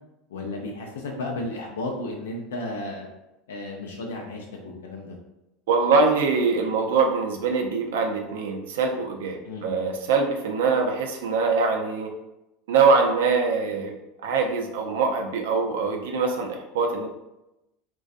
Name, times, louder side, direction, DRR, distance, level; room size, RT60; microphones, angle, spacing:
voice 1, 0.3-3.1 3.5-4.4 4.8-5.2 9.4-9.7, left 2 dB, 85° left, 0 dB, 0.4 m, -33 dB
voice 2, 5.7-12.1 12.7-13.9 14.2-17.1, right 4 dB, 80° right, 3 dB, 0.4 m, -23 dB
2.6 x 2.2 x 2.4 m, 0.93 s
hypercardioid pair, 95°, 0 cm